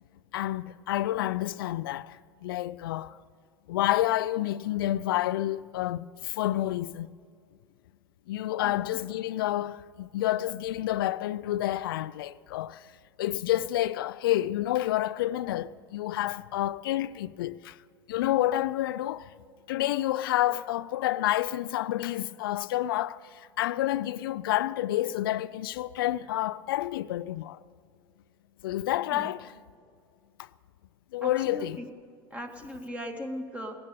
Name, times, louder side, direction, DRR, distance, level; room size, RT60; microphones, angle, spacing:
voice 1, 0.3-3.2 3.7-7.1 8.3-12.9 13.2-17.8 18.1-19.3 19.7-27.6 28.6-29.5 30.4-30.5 31.1-31.8, left 14 dB, 80° left, 0.4 m, -29 dB
voice 2, 31.2-31.9 32.3-33.7, equal, 10° right, 2.1 m, -38 dB
18.0 x 9.9 x 6.8 m
hypercardioid pair, 95°, 12 cm